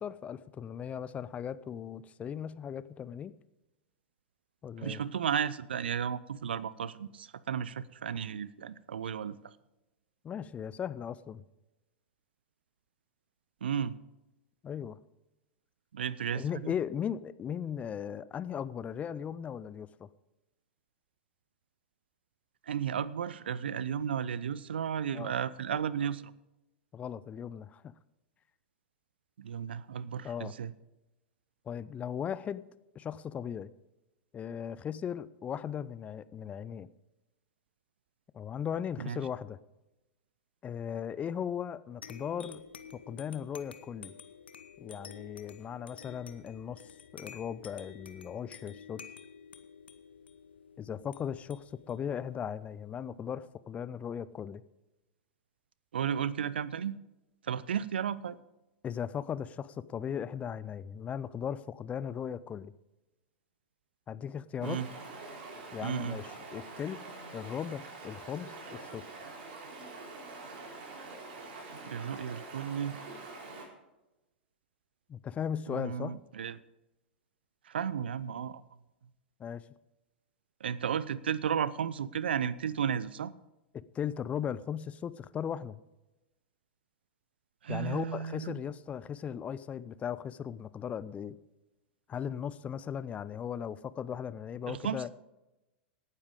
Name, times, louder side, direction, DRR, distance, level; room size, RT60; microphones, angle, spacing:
voice 1, 0.0-3.3 4.6-5.0 10.2-11.4 14.6-15.0 16.3-20.1 25.1-25.3 26.9-27.9 30.2-30.5 31.7-32.6 33.0-33.7 34.3-36.9 38.3-39.6 40.6-42.6 42.9-44.1 44.8-46.8 47.1-49.0 50.8-54.6 58.8-62.7 64.1-64.8 65.7-67.0 67.3-69.0 75.1-76.2 79.4-79.6 83.7-85.8 87.7-91.4 92.1-95.1, left 8 dB, 25° left, 17 dB, 0.5 m, -37 dB
voice 2, 4.8-9.5 13.6-14.0 15.9-16.7 22.7-26.3 29.4-30.7 39.0-39.2 55.9-57.0 57.4-58.4 64.6-64.9 65.8-66.2 71.9-73.0 75.7-76.6 77.7-78.6 80.6-83.3 87.6-88.6 94.7-95.1, right 8 dB, 70° right, 19 dB, 0.5 m, -34 dB
sound 1, 42.0-53.1, left 7 dB, 75° left, 0.9 m, -51 dB
Stream, 64.6-73.7, right 3 dB, 55° right, 4.3 m, -45 dB
18.0 x 9.8 x 3.7 m, 1.0 s
figure-of-eight pair, 95°, 6 cm